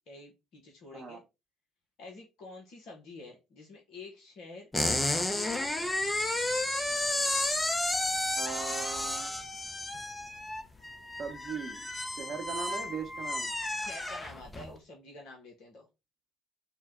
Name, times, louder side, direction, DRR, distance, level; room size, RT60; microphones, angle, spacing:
voice 1, 0.1-1.2 2.0-5.9 13.8-15.9, left 3 dB, 65° left, 0 dB, 0.9 m, -48 dB
sound 1, 4.7-14.7, left 1 dB, 20° left, 0.7 m, -32 dB
voice 2, 8.4-9.3 11.2-13.5, right 6 dB, 45° right, 3 dB, 0.8 m, -39 dB
4.4 x 2.1 x 3.5 m, 0.26 s
hypercardioid pair, 50°, 0 cm